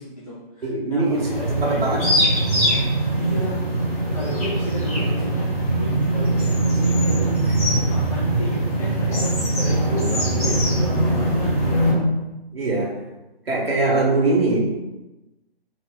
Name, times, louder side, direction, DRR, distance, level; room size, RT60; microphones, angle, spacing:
voice 1, 0.0-2.6 3.2-3.6 4.1-7.2 7.7-12.0, equal, 35° left, -6 dB, 0.5 m, -32 dB
voice 2, 0.6-2.2 7.7-7.8 12.5-12.9 13.5-14.6, right 2 dB, 65° right, -3 dB, 1.1 m, -22 dB
sound 1, 1.1-11.9, right 1 dB, 15° left, 0.9 m, -21 dB
3.5 x 2.4 x 3.8 m, 1.0 s
figure-of-eight pair, 155°, 31 cm